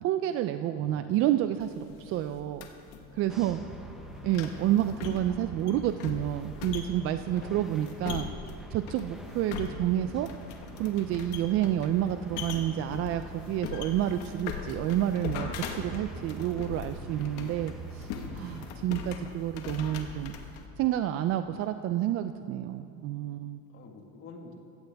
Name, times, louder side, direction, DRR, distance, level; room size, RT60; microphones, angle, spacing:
voice 1, 0.0-1.7 2.0-2.7 3.1-3.6 4.2-8.3 8.7-10.3 10.8-18.1 18.3-20.4 20.8-23.6, right 12 dB, 45° right, 9 dB, 0.4 m, -29 dB
voice 2, 0.7-1.3 3.4-4.2 7.2-7.8 11.3-11.4 18.6-19.0 23.7-24.5, left 5 dB, 40° left, 3 dB, 1.6 m, -51 dB
sound 1, 1.6-20.7, left 6 dB, 90° left, 1.5 m, -41 dB
sound 2, 3.3-18.8, right 3 dB, ahead, 0.9 m, -46 dB
16.0 x 15.0 x 3.4 m, 2.6 s
cardioid pair, 150°, 33 cm